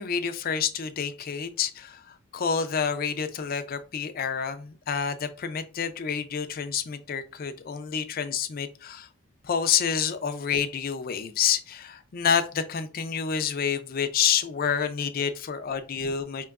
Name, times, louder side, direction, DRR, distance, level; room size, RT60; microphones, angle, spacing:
voice 1, 0.0-9.1 9.4-16.4, left 7 dB, 45° left, 9 dB, 0.4 m, -28 dB
4.5 x 2.9 x 2.3 m, 0.35 s
head